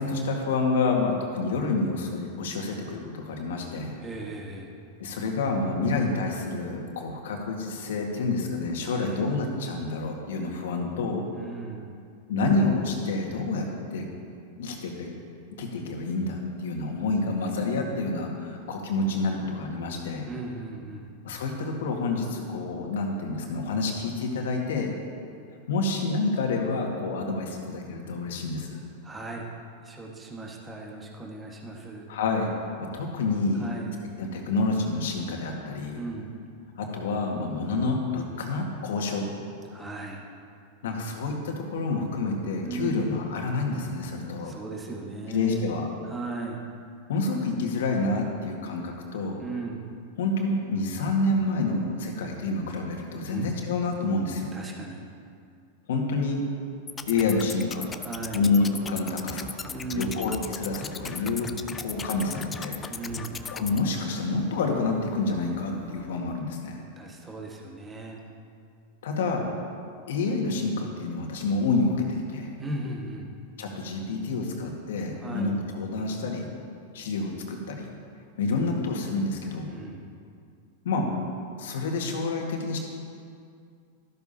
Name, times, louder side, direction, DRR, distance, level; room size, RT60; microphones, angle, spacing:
voice 1, 0.0-4.0 5.0-11.2 12.3-14.1 14.6-15.1 15.6-20.3 21.2-24.9 25.7-28.8 32.1-32.5 32.8-33.7 34.2-36.0 36.8-39.3 40.8-44.5 45.3-45.9 47.1-49.4 50.2-54.5 55.9-56.4 57.1-57.9 58.3-59.6 59.9-61.5 61.8-62.8 63.5-66.8 69.0-69.5 70.1-72.6 73.6-76.5 76.9-77.9 78.4-79.8 80.9-81.1 81.6-82.8, left 3 dB, 70° left, 1 dB, 1.8 m, -28 dB
voice 2, 4.0-4.8 8.8-9.2 11.3-12.0 20.3-21.1 29.0-29.5 29.8-32.1 33.5-34.0 35.9-36.3 39.7-40.2 42.6-43.1 44.3-45.7 46.0-46.6 49.4-49.9 53.3-53.5 54.5-55.0 58.0-58.4 59.7-60.2 62.9-63.4 67.0-68.2 72.6-73.3 75.2-75.6 79.7-80.1, right 3 dB, 20° right, -1 dB, 1.5 m, -37 dB
sound 1, 56.9-63.8, left 5 dB, 20° left, 0.5 m, -38 dB
Engine, 57.0-66.0, right 3 dB, 55° right, 1.5 m, -49 dB
13.0 x 12.5 x 2.9 m, 2.3 s
hypercardioid pair, 100°, 0 cm